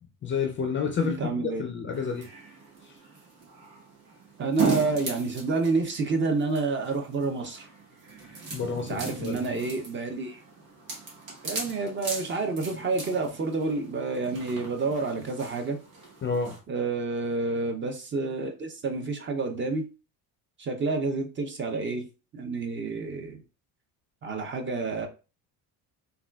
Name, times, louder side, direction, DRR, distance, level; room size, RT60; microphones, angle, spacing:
voice 1, 0.2-2.2 2.8-3.0 8.5-9.4 16.2-16.6, left 5 dB, 30° left, 0.4 m, -30 dB
voice 2, 1.0-1.6 4.4-7.7 8.9-10.4 11.4-15.8 16.7-19.8 20.6-22.1 22.3-23.4 24.2-25.1, right 3 dB, 30° right, 0.5 m, -29 dB
sound 1, 1.9-16.6, right 4 dB, 60° right, 1.4 m, -37 dB
3.4 x 2.3 x 2.2 m
cardioid pair, 125°, 40 cm